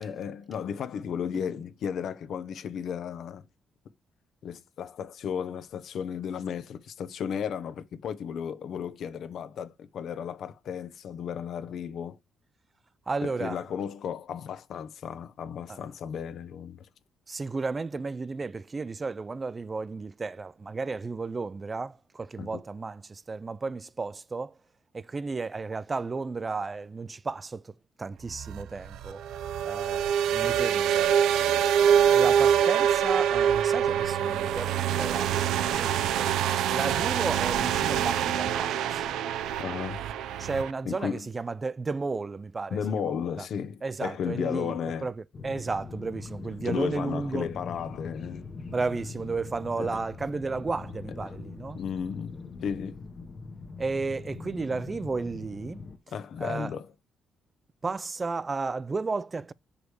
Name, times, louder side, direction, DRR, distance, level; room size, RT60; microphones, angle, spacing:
voice 1, 0.0-3.5 4.4-12.2 13.2-16.9 22.4-22.6 39.6-40.0 40.8-41.3 42.7-45.1 46.6-48.5 49.8-49.9 51.3-51.4 51.8-53.0 56.1-56.9, left 7 dB, 65° left, 0.8 m, -34 dB
voice 2, 13.1-13.6 15.7-15.8 17.3-24.5 24.9-29.2 29.6-31.4 32.1-39.1 40.4-43.1 43.4-43.5 43.8-44.7 45.0-45.1 45.4-47.5 48.7-51.8 53.8-55.8 56.4-56.7 57.8-59.5, right 4 dB, 30° right, 0.3 m, -33 dB
sound 1, 28.3-40.7, right 9 dB, 85° right, 0.5 m, -25 dB
sound 2, 45.3-56.0, left 4 dB, 40° left, 1.1 m, -42 dB
6.4 x 5.0 x 4.8 m
cardioid pair, 90°, 0 cm